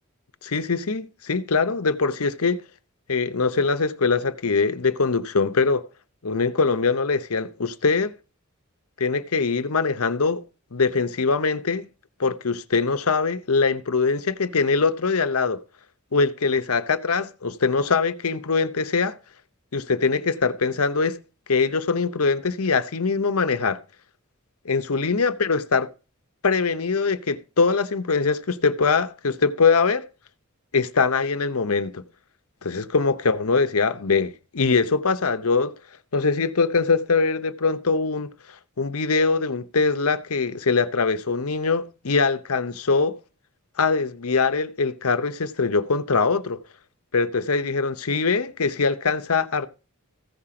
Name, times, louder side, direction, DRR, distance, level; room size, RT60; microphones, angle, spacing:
voice 1, 0.4-2.6 3.1-5.9 6.2-8.1 9.0-10.4 10.7-11.9 12.2-15.6 16.1-19.2 19.7-21.2 21.5-23.8 24.6-25.9 26.4-30.1 30.7-32.0 32.6-35.7 36.1-43.1 43.8-46.6 47.1-49.7, left 4 dB, 90° left, 1.0 m, -22 dB
15.5 x 5.9 x 5.0 m
head